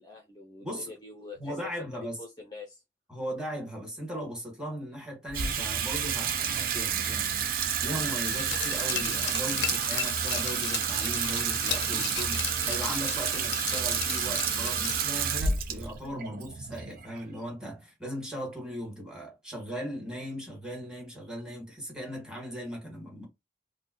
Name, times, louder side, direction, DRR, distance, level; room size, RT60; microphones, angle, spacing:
voice 1, 0.0-2.8, left 4 dB, 25° left, 0.5 m, -44 dB
voice 2, 1.4-2.2 3.1-23.2, equal, 5° right, 1.4 m, -38 dB
Water tap faucet / Sink (filling or washing), 5.3-17.7, right 7 dB, 55° right, 0.5 m, -30 dB
Glass, 8.3-15.2 15.5-15.6, left 9 dB, 80° left, 0.4 m, -36 dB
3.7 x 2.1 x 2.5 m
head